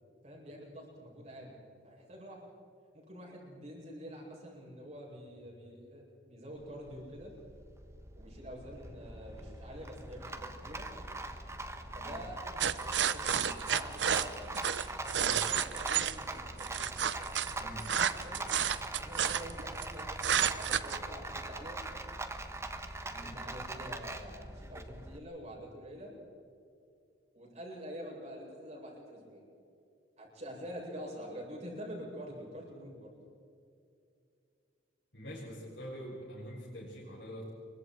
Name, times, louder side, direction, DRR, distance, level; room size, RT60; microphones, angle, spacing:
voice 1, 0.2-1.5 1.8-2.5 2.9-7.3 8.2-10.8 11.9-12.4 12.7-14.6 15.1-18.4 19.0-21.8 23.2-26.1 27.3-29.4 30.2-33.1, equal, 40° right, -2 dB, 7.7 m, -47 dB
Rattle, 6.6-25.2, right 2 dB, 15° right, 1.3 m, -42 dB
sound 1, 12.6-16.2 16.6-19.9 20.2-21.0, right 8 dB, 75° right, 0.8 m, -30 dB
voice 2, 15.1-15.5 17.5-17.9 23.1-23.4 35.1-37.5, equal, 80° left, -8 dB, 6.4 m, -45 dB
28.0 x 24.0 x 4.7 m, 2.5 s
head